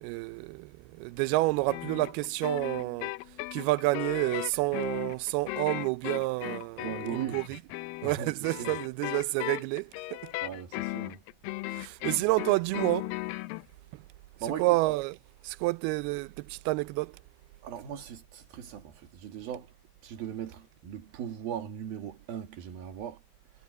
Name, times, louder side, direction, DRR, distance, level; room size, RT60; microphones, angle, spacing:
voice 1, 0.0-3.1 3.5-7.4 8.0-10.3 11.7-13.1 13.9-14.0 14.6-15.2 15.4-17.2, right 22 dB, 85° right, 2.5 m, -29 dB
sound 1, 1.7-13.6, left 21 dB, 85° left, 2.0 m, -37 dB
voice 2, 6.8-7.4 8.0-8.8 10.4-11.2 14.4-14.8 17.6-19.7 20.0-23.2, right 9 dB, 65° right, 4.0 m, -39 dB
omnidirectional pair, 4.6 m